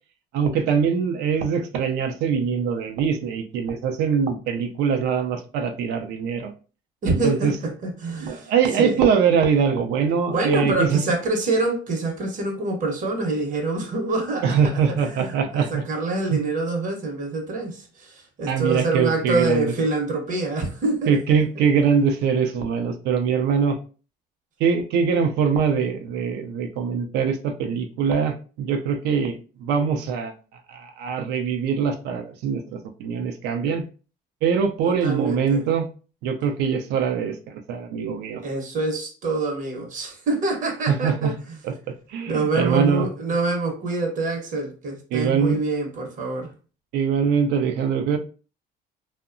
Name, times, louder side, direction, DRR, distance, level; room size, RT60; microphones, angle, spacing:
voice 1, 0.3-6.5 7.1-7.5 8.2-11.0 14.4-15.8 16.3-16.4 18.5-19.7 21.1-23.8 24.6-30.3 30.7-33.8 34.4-35.9 36.2-38.4 40.9-41.3 41.6-43.1 45.1-45.6 46.9-48.2, right 6 dB, 90° right, 0.5 m, -23 dB
voice 2, 7.0-8.5 8.8-9.0 10.3-14.7 15.1-21.2 34.8-35.6 38.4-41.3 42.3-46.5, right 3 dB, 50° right, 0.8 m, -26 dB
2.7 x 2.1 x 2.4 m
cardioid pair, 110°, 17 cm